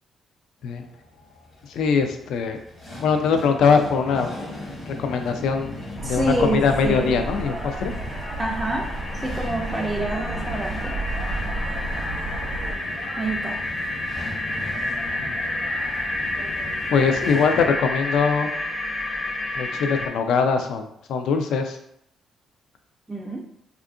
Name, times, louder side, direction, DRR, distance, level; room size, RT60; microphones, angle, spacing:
sound 1, 0.6-17.7, left 1 dB, 60° left, 1.0 m, -37 dB
voice 1, 1.7-2.6 3.0-4.3 4.9-5.7 6.0-7.9 15.2-15.4 16.9-18.5 19.6-21.8, left 5 dB, 80° left, 6 dB, 0.3 m, -22 dB
sound 2, 5.1-5.2 5.4-20.1, left 2 dB, 45° left, 0.6 m, -31 dB
voice 2, 6.0-7.2 8.4-8.9 9.2-11.0 13.2-13.6 23.1-23.5, right 2 dB, 10° right, -2 dB, 0.3 m, -27 dB
sound 3, 6.0-12.7, right 2 dB, 65° right, 0.6 m, -32 dB
2.7 x 2.4 x 2.4 m, 0.72 s
cardioid pair, 90°, 0 cm